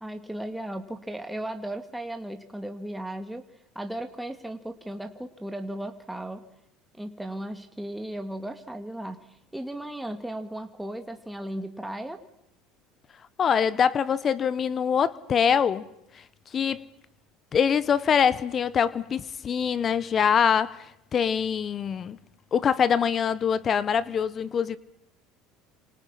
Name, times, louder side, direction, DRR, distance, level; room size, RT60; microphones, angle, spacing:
voice 1, 0.0-3.4 3.8-6.5 6.9-9.3 9.5-12.2, right 1 dB, 5° right, 2.2 m, -36 dB
voice 2, 13.4-15.9 16.5-16.8 17.5-20.8 21.1-22.2 22.5-24.8, left 7 dB, 40° left, 1.1 m, -24 dB
27.5 x 27.0 x 5.8 m
hypercardioid pair, 80°, 0 cm